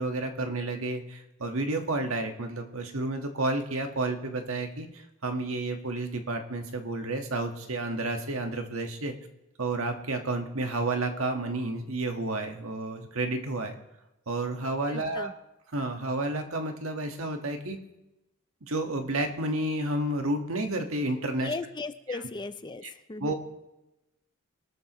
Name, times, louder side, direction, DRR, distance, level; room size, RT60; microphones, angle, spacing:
voice 1, 0.0-9.1 9.6-13.7 14.3-15.3 15.7-17.8 18.6-21.5 22.1-22.2 22.8-22.9 23.2-23.3, right 2 dB, 75° right, 4 dB, 1.5 m, -31 dB
voice 2, 14.9-15.3 21.4-22.8 23.1-23.3, left 3 dB, 20° left, 12 dB, 0.5 m, -36 dB
22.5 x 12.5 x 3.1 m, 0.95 s
head